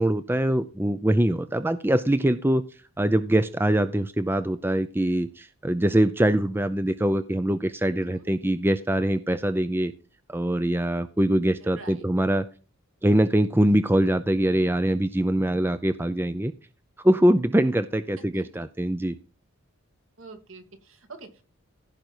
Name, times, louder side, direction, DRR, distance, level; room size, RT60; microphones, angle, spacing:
voice 1, 0.0-2.6 3.0-9.9 10.3-12.4 13.0-16.5 17.0-19.1, right 1 dB, 10° right, 11 dB, 0.5 m, -23 dB
voice 2, 11.6-12.1 18.3-18.4 20.2-21.4, right 3 dB, 65° right, 6 dB, 2.3 m, -45 dB
15.5 x 5.3 x 4.5 m, 0.35 s
head